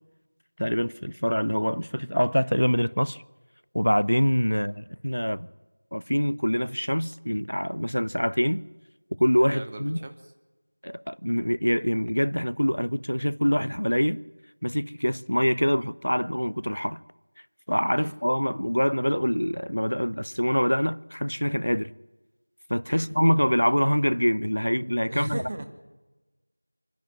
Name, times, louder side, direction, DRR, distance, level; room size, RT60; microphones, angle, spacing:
voice 1, 0.6-3.2 3.7-5.5 5.9-8.6 9.2-10.0 10.8-14.2 14.6-17.0 17.7-21.9 22.7-25.4, equal, 80° left, 0.7 m, -25 dB
voice 2, 9.5-10.1 18.0-18.1 22.9-23.1 25.1-25.6, right 2 dB, 15° right, 1.0 m, -37 dB
26.0 x 10.5 x 9.8 m
figure-of-eight pair, 175°, 0 cm